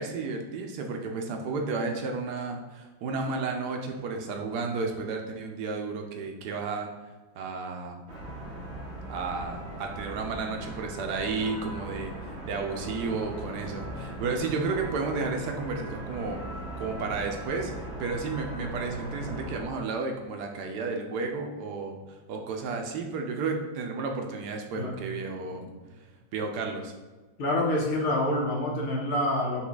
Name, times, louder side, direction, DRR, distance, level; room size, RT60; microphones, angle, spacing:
voice 1, 0.0-6.9 7.4-8.0 9.1-16.4 16.8-22.0 22.3-25.6 26.3-26.9, right 4 dB, 75° right, 3 dB, 1.1 m, -32 dB
sound 1, 8.1-19.7, right 1 dB, 50° right, 0.9 m, -38 dB
voice 2, 25.3-25.7 27.4-29.7, left 1 dB, 65° left, -2 dB, 1.3 m, -27 dB
5.7 x 2.2 x 3.9 m, 1.2 s
omnidirectional pair, 1.8 m